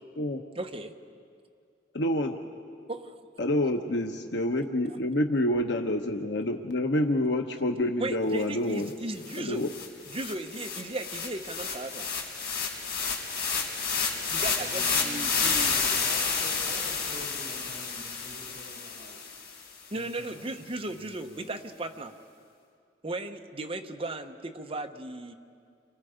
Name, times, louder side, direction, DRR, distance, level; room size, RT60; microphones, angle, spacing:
voice 1, 0.5-1.0 2.9-3.2 8.0-9.7 10.1-12.1 14.3-15.7 19.9-22.1 23.0-25.3, right 2 dB, 30° right, 4 dB, 1.1 m, -36 dB
voice 2, 1.9-2.4 3.4-8.9 9.4-9.7, left 1 dB, 90° left, 4 dB, 1.0 m, -27 dB
sound 1, 8.9-9.0 9.2-19.6, left 5 dB, 60° left, 4.5 m, -30 dB
voice 3, 14.4-19.2 19.7-21.4, right 1 dB, 55° right, -4 dB, 6.4 m, -47 dB
30.0 x 24.5 x 5.1 m, 2.3 s
head